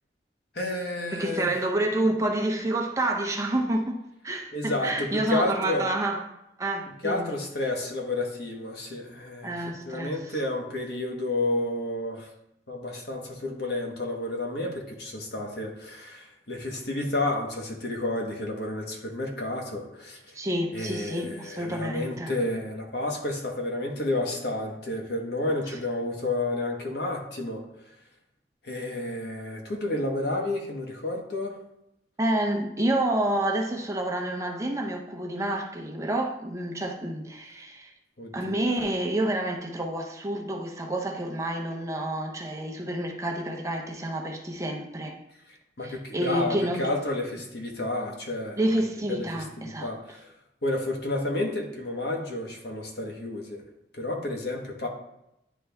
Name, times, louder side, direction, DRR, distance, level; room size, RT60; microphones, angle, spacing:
voice 1, 0.5-1.6 4.5-5.9 7.0-9.5 9.8-12.3 12.7-20.3 20.7-27.6 28.6-31.6 38.2-38.7 45.8-48.6 49.1-50.3 50.6-53.6 54.0-54.9, left 2 dB, 65° left, 1.2 m, -31 dB
voice 2, 1.1-6.2 6.6-7.3 9.4-10.4 20.3-22.3 25.7-25.8 32.2-37.9 38.3-45.2 45.8-46.8 48.6-49.9, right 1 dB, 20° right, 0.7 m, -29 dB
9.9 x 3.3 x 3.4 m
head